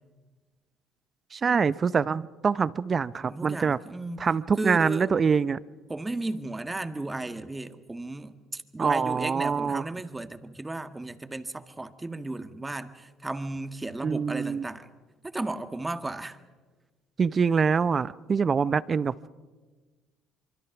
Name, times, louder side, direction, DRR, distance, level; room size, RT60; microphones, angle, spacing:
voice 1, 1.3-3.8 4.2-5.6 8.8-9.8 14.0-14.6 17.2-19.3, right 5 dB, 40° right, 18 dB, 0.6 m, -25 dB
voice 2, 3.3-4.2 4.6-5.1 5.9-14.9 15.2-16.4, right 2 dB, 15° right, 9 dB, 1.6 m, -35 dB
25.5 x 24.0 x 6.0 m, 1.3 s
supercardioid pair, 65°, 0 cm